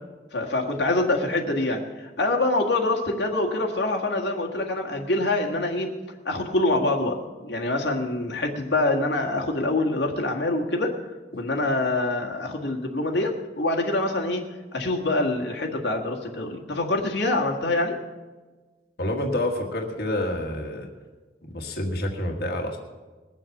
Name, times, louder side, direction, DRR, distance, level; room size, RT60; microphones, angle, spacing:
voice 1, 0.3-6.0 6.2-7.2 7.4-10.9 11.3-14.4 14.7-18.0, left 2 dB, 75° left, 1 dB, 1.7 m, -25 dB
voice 2, 19.0-20.9 21.5-22.8, left 1 dB, 60° left, 1 dB, 1.6 m, -28 dB
20.5 x 7.5 x 7.1 m, 1.3 s
head